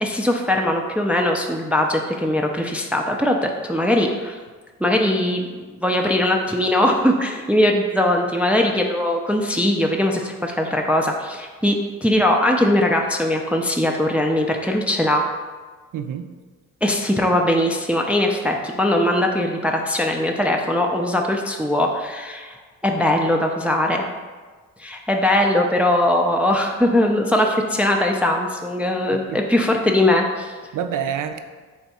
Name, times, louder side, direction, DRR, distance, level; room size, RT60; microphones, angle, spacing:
voice 1, 0.0-4.4 4.8-15.2 16.8-22.6 22.8-24.1 24.8-30.5, left 1 dB, 5° right, 2 dB, 0.4 m, -20 dB
voice 2, 15.9-16.4 29.1-29.5 30.7-31.4, right 8 dB, 60° right, 8 dB, 0.5 m, -28 dB
3.6 x 3.4 x 4.1 m, 1.4 s
supercardioid pair, 60°, 36 cm